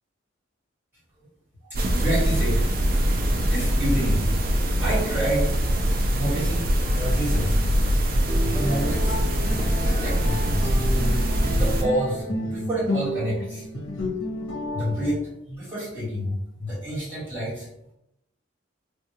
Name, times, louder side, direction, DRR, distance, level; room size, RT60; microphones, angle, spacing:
voice 1, 1.7-2.6 3.3-4.3 4.8-5.5 6.1-6.7 6.9-7.6 8.4-9.2 9.7-10.7 11.5-13.7 14.7-15.2 15.5-17.7, right 1 dB, 10° right, -10 dB, 1.4 m, -28 dB
sound 1, 1.7-11.8, equal, 45° right, 0.4 m, -23 dB
sound 2, 8.3-15.1, left 1 dB, 70° left, 0.7 m, -31 dB
3.4 x 2.3 x 2.8 m, 0.80 s
head